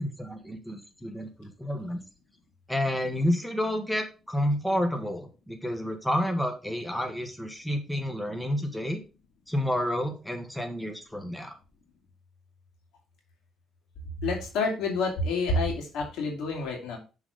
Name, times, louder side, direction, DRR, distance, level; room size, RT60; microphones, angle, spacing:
voice 1, 0.0-2.0 2.7-9.0 9.5-11.6, equal, 5° left, 5 dB, 1.4 m, -30 dB
voice 2, 14.2-17.0, left 3 dB, 90° left, 2 dB, 2.5 m, -28 dB
7.1 x 4.1 x 5.2 m, 0.32 s
cardioid pair, 90°, 0 cm